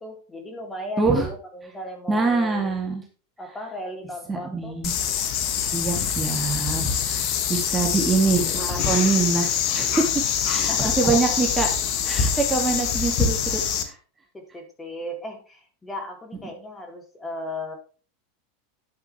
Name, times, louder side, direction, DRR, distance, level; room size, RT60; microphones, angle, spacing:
voice 1, 0.0-2.7 3.4-4.8 10.5-11.4 14.3-17.8, left 1 dB, 15° left, 3 dB, 3.5 m, -36 dB
voice 2, 2.1-3.0 4.3-4.9 5.7-10.2 10.5-11.7 12.0-13.9, right 4 dB, 15° right, 1 dB, 2.7 m, -24 dB
sound 1, 4.8-13.8, left 7 dB, 50° left, 2.1 m, -24 dB
11.0 x 8.0 x 3.5 m, 0.37 s
hypercardioid pair, 95°, 0 cm